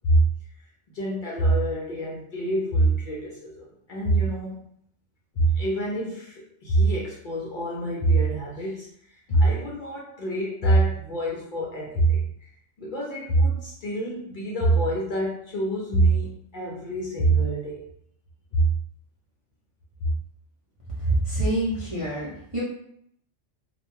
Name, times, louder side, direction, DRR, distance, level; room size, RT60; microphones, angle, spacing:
voice 1, 0.9-4.7 5.4-8.9 9.3-12.5 12.8-17.8 18.5-18.7, right 2 dB, 55° left, -3 dB, 0.6 m, -24 dB
voice 2, 21.0-22.6, right 2 dB, 40° right, -7 dB, 0.5 m, -26 dB
2.3 x 2.1 x 3.0 m, 0.70 s
omnidirectional pair, 1.2 m